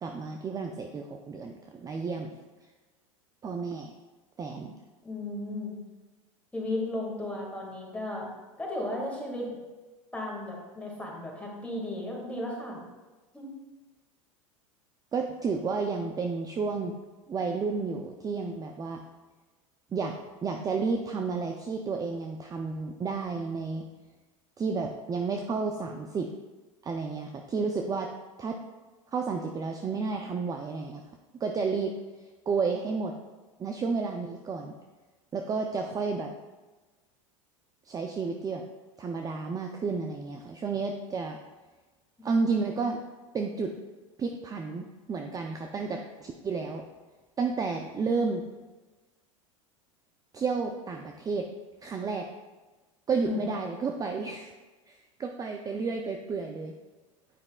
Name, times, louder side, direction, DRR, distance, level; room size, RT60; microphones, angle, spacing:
voice 1, 0.0-2.4 3.4-3.9 4.4-4.7 15.1-17.0 17.3-19.0 19.9-20.2 20.4-23.9 24.6-26.3 26.8-28.1 28.4-28.6 29.1-31.0 31.4-31.9 32.5-33.1 33.6-34.7 35.3-36.3 37.9-38.6 39.0-41.4 42.2-43.0 43.3-43.7 44.2-46.8 47.4-48.4 50.3-51.5 51.8-52.3 53.1-54.5 54.9-56.7, right 4 dB, 20° right, 4 dB, 0.5 m, -31 dB
voice 2, 5.0-5.7 6.5-8.3 8.6-9.6 10.1-12.8 13.3-13.5 53.2-53.4, left 1 dB, 5° left, -3 dB, 2.0 m, -34 dB
9.1 x 5.3 x 2.3 m, 1.2 s
hypercardioid pair, 95°, 17 cm